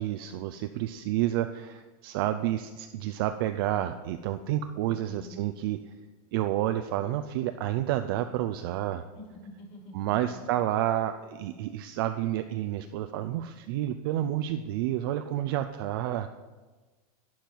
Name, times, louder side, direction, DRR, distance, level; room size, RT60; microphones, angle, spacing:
voice 1, 0.0-5.8 6.3-9.0 9.9-16.3, right 13 dB, 40° right, 9 dB, 0.4 m, -30 dB
voice 2, 4.9-5.4 9.1-10.5, left 1 dB, 30° left, 1 dB, 2.1 m, -47 dB
11.5 x 9.3 x 4.5 m, 1.3 s
supercardioid pair, 170°, 19 cm